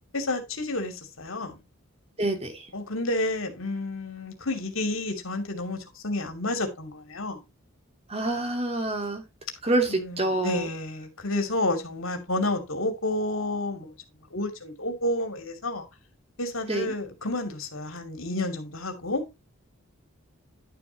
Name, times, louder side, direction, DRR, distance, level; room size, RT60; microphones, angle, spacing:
voice 1, 0.1-1.6 2.7-7.4 10.0-13.9 14.3-15.9 16.4-19.2, left 2 dB, 70° left, 2.7 m, -30 dB
voice 2, 2.2-2.7 8.1-9.2 9.6-10.7 16.7-17.0, right 2 dB, 30° right, 2.7 m, -27 dB
11.5 x 7.2 x 2.9 m
head